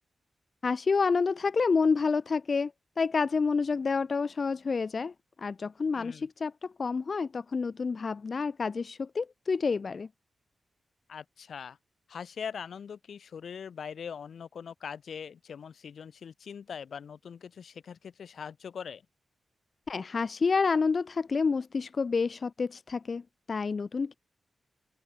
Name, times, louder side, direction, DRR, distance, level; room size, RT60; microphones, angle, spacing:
voice 1, 0.6-2.7 3.0-5.1 5.4-10.1 19.9-23.2 23.5-24.1, left 4 dB, 35° left, 3.1 m, -28 dB
voice 2, 5.9-6.3 11.1-11.8 12.1-19.0, left 7 dB, 65° left, 8.0 m, -42 dB
open air
wide cardioid pair, 175°, 0 cm